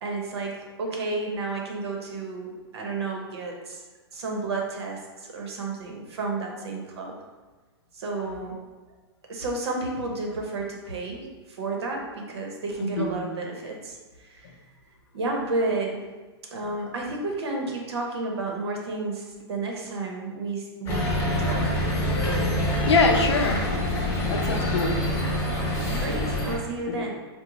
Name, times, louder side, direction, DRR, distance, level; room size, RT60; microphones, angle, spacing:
voice 1, 0.0-3.8 4.1-7.2 7.9-8.6 9.3-14.5 15.1-16.0 16.5-21.8 25.9-27.1, right 3 dB, 75° right, 0 dB, 0.8 m, -31 dB
voice 2, 12.8-13.1 22.9-23.6 24.3-24.9 26.9-27.0, left 4 dB, 85° left, 2 dB, 0.6 m, -23 dB
sound 1, 20.9-26.6, left 1 dB, 20° left, 0.7 m, -26 dB
3.8 x 2.1 x 2.9 m, 1.3 s
hypercardioid pair, 155°, 14 cm